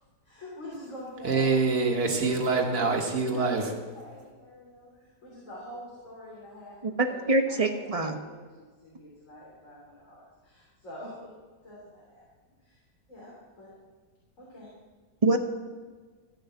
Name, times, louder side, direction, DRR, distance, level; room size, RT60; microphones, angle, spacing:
voice 1, 0.2-1.6 3.3-11.3 11.6-12.2 12.6-12.8 13.1-13.7 14.4-14.7, equal, 45° left, -6 dB, 3.5 m, -46 dB
voice 2, 1.2-3.6, right 4 dB, 65° right, 1 dB, 2.2 m, -25 dB
voice 3, 6.8-8.2 15.2-15.4, right 2 dB, 30° right, 5 dB, 0.7 m, -25 dB
14.0 x 6.5 x 7.9 m, 1.5 s
omnidirectional pair, 1.8 m